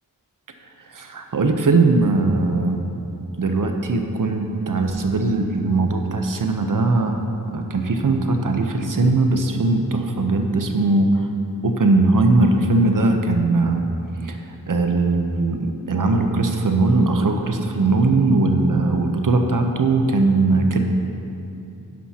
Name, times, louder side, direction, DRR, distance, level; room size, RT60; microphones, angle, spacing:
voice 1, 0.9-2.8 3.4-7.2 7.5-11.1 11.6-13.8 14.3-14.4 14.7-20.8, right 3 dB, 70° right, 4 dB, 0.9 m, -19 dB
11.0 x 10.0 x 2.9 m, 2.7 s
wide cardioid pair, 60°, 34 cm